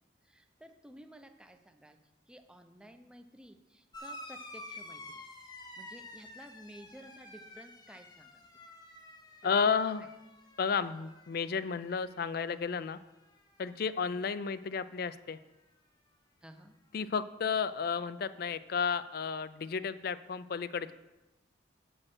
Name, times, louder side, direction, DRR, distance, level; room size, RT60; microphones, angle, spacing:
voice 1, 0.2-2.0 2.3-5.2 5.5-8.4 9.4-9.8 16.4-16.7, right 1 dB, 5° right, 6 dB, 0.6 m, -54 dB
sound 1, 3.9-12.9 13.2-14.0 15.1-15.2, left 1 dB, 20° left, 0.9 m, -50 dB
voice 2, 9.4-10.0 10.6-13.0 13.6-15.4 16.9-20.9, left 6 dB, 55° left, 15 dB, 0.4 m, -32 dB
7.7 x 6.4 x 6.1 m, 1.0 s
head